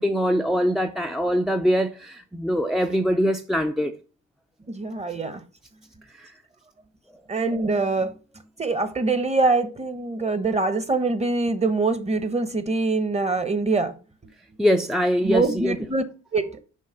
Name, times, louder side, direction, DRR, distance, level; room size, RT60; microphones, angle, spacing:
voice 1, 0.0-4.0 6.1-6.3 14.6-15.8, equal, ahead, 0.5 m, -23 dB
voice 2, 4.7-5.4 7.3-8.1 8.6-13.9 15.2-16.0 16.3-16.5, right 3 dB, 20° right, 1.0 m, -24 dB
6.4 x 4.7 x 5.7 m
cardioid pair, 90°, 30 cm